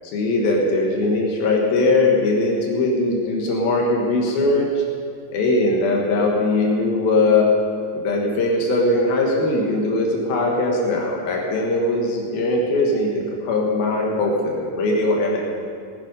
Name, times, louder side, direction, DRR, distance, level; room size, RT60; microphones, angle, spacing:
voice 1, 0.1-4.8 5.3-7.5 7.9-15.4, left 2 dB, 85° left, 0 dB, 3.3 m, -20 dB
20.0 x 9.2 x 5.3 m, 2.2 s
omnidirectional pair, 4.1 m